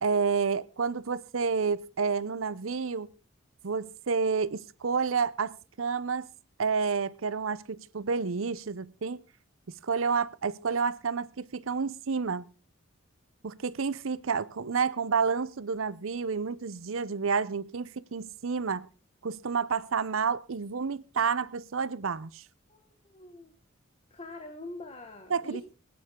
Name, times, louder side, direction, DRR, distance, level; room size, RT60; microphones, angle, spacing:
voice 1, 0.0-3.1 3.6-6.3 6.6-9.2 9.7-12.5 13.4-18.9 19.2-22.4 25.3-25.6, right 5 dB, 75° right, 0.7 m, -30 dB
voice 2, 22.7-23.5 24.1-25.6, left 2 dB, 30° left, 1.7 m, -44 dB
21.5 x 9.6 x 3.7 m
head